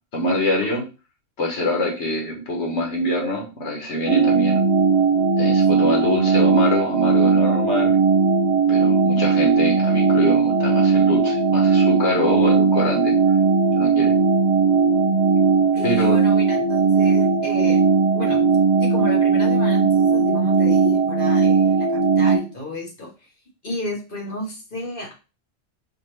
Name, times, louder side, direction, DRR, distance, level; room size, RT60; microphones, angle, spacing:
voice 1, 0.1-0.8 1.4-4.6 5.4-8.0 8.7-13.4 13.8-14.1 15.8-16.2, left 1 dB, 65° left, 0 dB, 1.3 m, -24 dB
sound 1, 4.1-22.4, right 5 dB, 55° right, 1.0 m, -18 dB
voice 2, 15.7-17.8 18.1-18.4 18.8-23.1 23.6-25.1, left 2 dB, 45° left, -1 dB, 1.1 m, -32 dB
4.4 x 2.5 x 3.2 m, 0.31 s
omnidirectional pair, 1.3 m